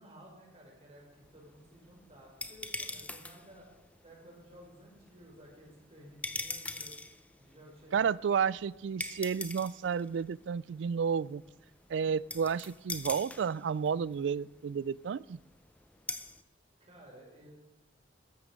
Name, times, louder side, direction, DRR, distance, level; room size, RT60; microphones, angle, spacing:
voice 1, 0.0-6.9 7.4-8.1 16.8-17.5, equal, 35° right, -2 dB, 5.4 m, -55 dB
sound 1, 1.1-16.4, left 2 dB, 10° left, 0.6 m, -45 dB
voice 2, 7.9-11.4 11.9-15.4, right 6 dB, 75° right, 22 dB, 0.3 m, -31 dB
13.5 x 13.0 x 5.3 m, 1.0 s
head